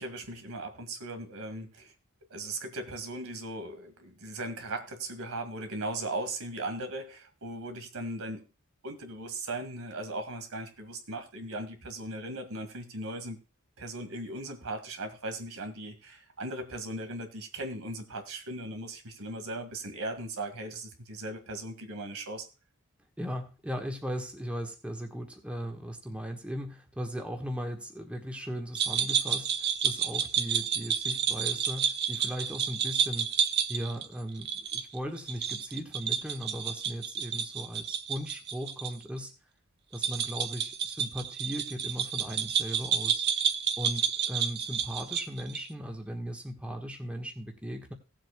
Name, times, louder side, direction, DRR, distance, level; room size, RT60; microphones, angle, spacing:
voice 1, 0.0-1.9 2.3-8.4 8.8-13.4 13.8-22.5, right 2 dB, 75° right, 7 dB, 1.9 m, -38 dB
voice 2, 23.2-33.3 33.7-39.3 39.9-43.3 43.8-47.9, equal, 5° right, 2 dB, 1.4 m, -38 dB
sound 1, 28.7-38.9 39.2-39.3 39.9-45.7, right 7 dB, 50° right, 0.8 m, -30 dB
17.5 x 7.8 x 2.3 m, 0.32 s
head